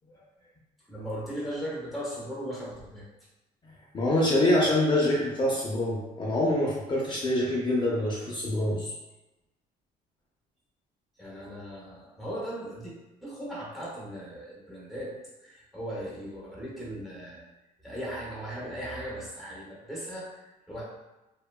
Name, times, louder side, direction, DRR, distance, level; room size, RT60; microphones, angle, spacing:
voice 1, 0.9-3.0 11.2-12.9 13.2-15.1 15.4-17.4 17.8-20.4 20.7-20.9, equal, ahead, -5 dB, 0.7 m, -37 dB
voice 2, 3.9-8.9, left 1 dB, 30° left, -5 dB, 0.5 m, -25 dB
2.7 x 2.2 x 2.2 m, 1.0 s
cardioid pair, 110°, 17 cm